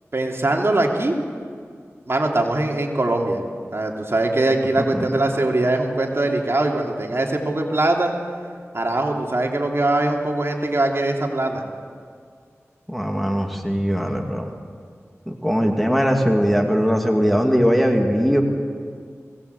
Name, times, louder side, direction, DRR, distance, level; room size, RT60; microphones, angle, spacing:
voice 1, 0.1-1.2 2.1-3.4 3.7-8.1 8.7-11.6, right 2 dB, 50° right, 1 dB, 2.7 m, -22 dB
voice 2, 4.9-5.3 12.9-14.5 15.3-18.4, equal, ahead, 2 dB, 2.4 m, -20 dB
22.0 x 17.5 x 8.1 m, 2.1 s
wide cardioid pair, 50°, 5 cm